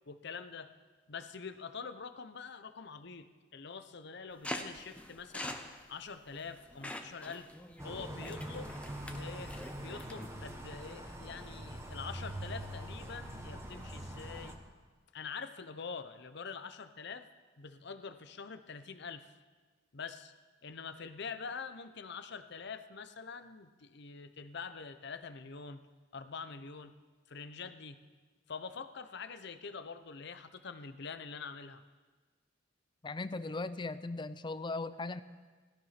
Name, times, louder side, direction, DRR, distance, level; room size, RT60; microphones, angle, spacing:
voice 1, 0.1-0.7 1.1-5.6 5.9-7.5 7.8-8.8 9.1-14.6 15.1-17.3 17.6-19.3 19.9-20.3 20.6-25.8 26.1-26.9 27.3-28.0 28.5-31.8, left 5 dB, 65° left, 11 dB, 0.8 m, -45 dB
sound 1, 4.4-10.3, left 1 dB, 5° left, 0.9 m, -45 dB
sound 2, 7.8-14.5, right 1 dB, 15° right, 1.5 m, -43 dB
voice 2, 33.0-35.2, left 3 dB, 25° left, 14 dB, 0.5 m, -38 dB
16.5 x 13.0 x 5.9 m, 1.4 s
head